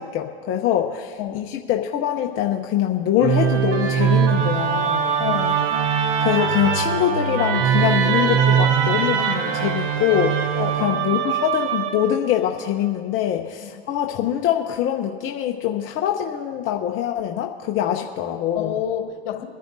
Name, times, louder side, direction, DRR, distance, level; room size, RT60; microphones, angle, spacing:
voice 1, 0.0-5.1 6.2-10.4 10.8-18.7, left 11 dB, 40° left, 2 dB, 0.9 m, -23 dB
Musical instrument, 3.2-12.4, right 8 dB, 55° right, 0.9 m, -21 dB
voice 2, 5.2-5.9 10.6-11.4 13.3-13.8 18.5-19.4, left 10 dB, 65° left, 3 dB, 1.9 m, -30 dB
29.0 x 10.0 x 2.7 m, 2.1 s
hypercardioid pair, 110°, 32 cm